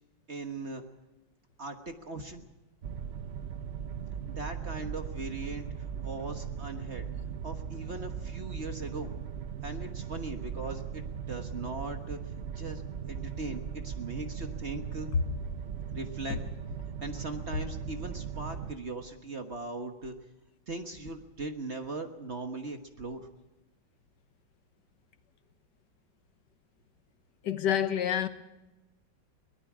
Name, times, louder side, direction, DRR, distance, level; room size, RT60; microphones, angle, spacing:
voice 1, 0.3-0.8 1.6-2.5 4.3-5.7 6.0-7.0 7.4-9.1 9.6-12.2 12.5-15.1 15.9-16.4 17.0-20.1 20.7-23.3, right 2 dB, 40° right, 1.4 m, -39 dB
sound 1, 2.8-18.7, right 7 dB, 60° right, 0.6 m, -38 dB
voice 2, 27.4-28.3, left 9 dB, 65° left, 1.7 m, -28 dB
23.5 x 18.5 x 6.1 m
omnidirectional pair, 2.1 m